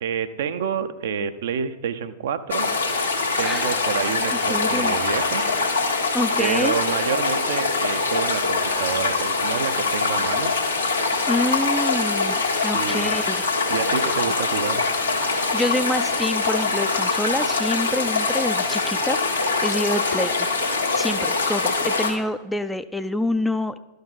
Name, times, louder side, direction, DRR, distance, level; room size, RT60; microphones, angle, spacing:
voice 1, 0.0-2.7 3.4-5.4 6.4-10.5 12.7-13.1 13.7-14.8, right 7 dB, 60° right, 11 dB, 0.5 m, -28 dB
sound 1, 2.5-22.1, left 3 dB, 80° left, 1.5 m, -23 dB
voice 2, 3.4-3.8 4.5-5.0 6.1-6.8 11.3-13.4 15.5-20.5 20.9-23.8, left 1 dB, 5° left, 11 dB, 0.3 m, -27 dB
12.5 x 5.2 x 3.9 m, 1.2 s
figure-of-eight pair, 90°, 0 cm